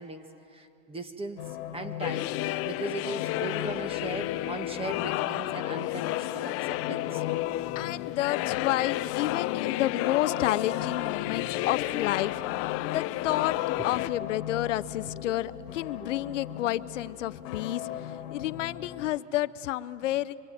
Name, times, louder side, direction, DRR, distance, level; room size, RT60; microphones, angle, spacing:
voice 1, 0.0-2.3 2.6-7.2 13.8-13.9 14.2-14.3 15.4-15.5 16.0-16.1, right 2 dB, 15° right, 8 dB, 1.7 m, -38 dB
sound 1, 1.4-19.2, left 11 dB, 60° left, 1.7 m, -40 dB
sound 2, 2.0-14.1, left 16 dB, 40° left, 0.7 m, -31 dB
voice 2, 7.7-12.4 12.9-13.6 13.8-20.4, left 14 dB, 80° left, 14 dB, 0.8 m, -30 dB
26.5 x 23.5 x 9.2 m, 2.6 s
supercardioid pair, 120°, 36 cm